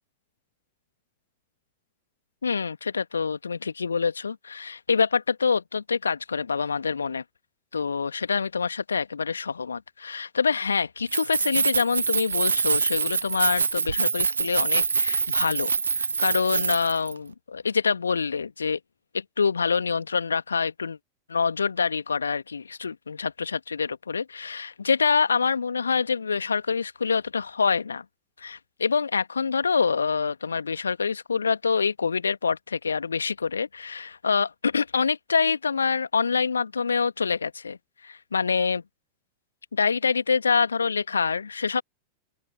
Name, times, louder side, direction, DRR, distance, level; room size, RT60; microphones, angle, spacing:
voice 1, 2.4-7.2 7.7-18.8 19.1-21.0 21.3-28.0 28.4-37.8 38.0-38.8 39.7-41.8, left 5 dB, 75° left, 2.0 m, -26 dB
Keys jangling, 11.0-17.1, right 5 dB, 75° right, 0.5 m, -25 dB
open air
figure-of-eight pair, 90°, 0 cm